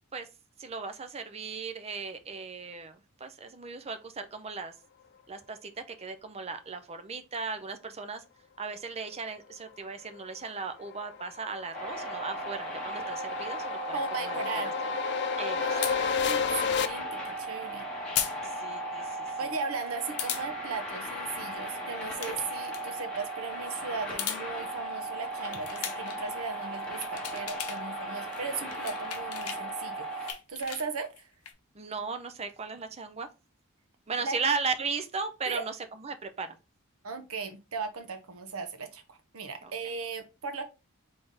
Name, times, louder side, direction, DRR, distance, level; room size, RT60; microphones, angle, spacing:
voice 1, 0.6-4.7 5.3-8.2 8.6-13.9 14.2-14.9 15.4-15.7 18.4-19.3 31.7-33.3 34.1-36.6 39.6-39.7, right 4 dB, 30° right, 0.5 m, -36 dB
sound 1, 10.3-16.9, left 6 dB, 50° left, 0.3 m, -32 dB
sound 2, 11.7-30.3, right 1 dB, 5° left, 1.7 m, -37 dB
voice 2, 13.9-14.7 15.6-17.9 19.4-31.3 34.2-34.4 35.5-35.6 37.0-40.6, right 4 dB, 70° right, 0.8 m, -37 dB
sound 3, 15.8-16.0 18.2-18.4 18.7-18.8 20.2-20.5 22.0-22.3 22.6-22.8 24.0-24.4 25.5-26.2 26.7-27.8 28.1-29.6 30.0-31.5, left 10 dB, 85° left, 0.7 m, -36 dB
3.6 x 3.5 x 3.9 m
head